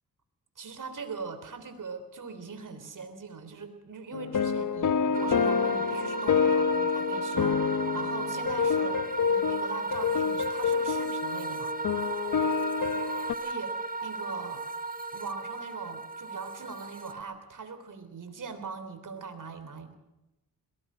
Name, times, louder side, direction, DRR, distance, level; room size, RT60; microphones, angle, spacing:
voice 1, 0.6-11.7 13.4-13.8 14.0-14.6 15.1-19.9, right 5 dB, 60° right, 9 dB, 3.5 m, -41 dB
sound 1, 4.1-13.3, left 6 dB, 60° left, 1.0 m, -28 dB
sound 2, 5.1-17.2, right 3 dB, 25° right, 1.7 m, -35 dB
22.0 x 19.0 x 6.3 m, 0.97 s
cardioid pair, 65°, 35 cm